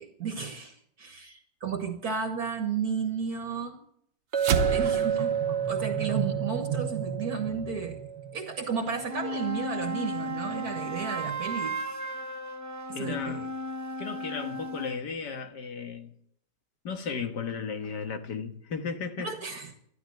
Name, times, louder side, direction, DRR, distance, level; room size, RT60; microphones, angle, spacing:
voice 1, 0.0-3.8 4.7-5.3 5.7-8.0 8.3-11.8 12.9-13.5 19.2-19.7, right 6 dB, 60° right, 1.8 m, -33 dB
Chink clink, 4.3-8.5, right 8 dB, 40° right, 1.4 m, -30 dB
sound 1, 4.4-9.0, right 6 dB, 90° right, 1.7 m, -32 dB
sound 2, 8.8-15.0, equal, 15° right, 0.5 m, -35 dB
voice 2, 12.9-13.5 14.0-16.1 16.8-19.3, left 5 dB, 70° left, 2.0 m, -35 dB
12.5 x 11.5 x 9.2 m
omnidirectional pair, 1.9 m